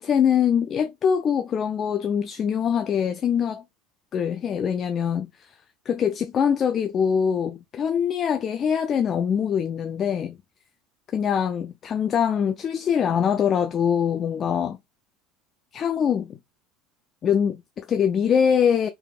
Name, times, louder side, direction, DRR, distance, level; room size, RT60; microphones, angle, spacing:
voice 1, 0.0-3.6 4.1-5.6 5.9-10.4 11.1-14.8 15.7-16.4 17.2-18.9, left 8 dB, 35° left, 0.3 m, -23 dB
3.4 x 3.1 x 2.4 m
supercardioid pair, 115°, 0 cm